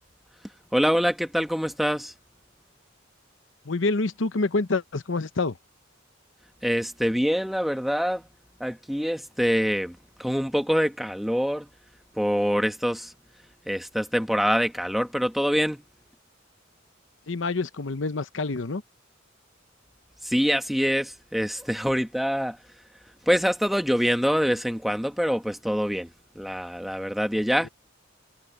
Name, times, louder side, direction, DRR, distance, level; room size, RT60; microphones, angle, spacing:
voice 1, 0.7-2.1 6.6-8.2 8.6-11.7 12.1-13.1 13.7-15.8 20.2-22.6 23.3-27.7, equal, ahead, 1.4 m, -25 dB
voice 2, 3.6-5.6 17.3-18.8 27.6-27.7, left 3 dB, 70° left, 0.9 m, -27 dB
head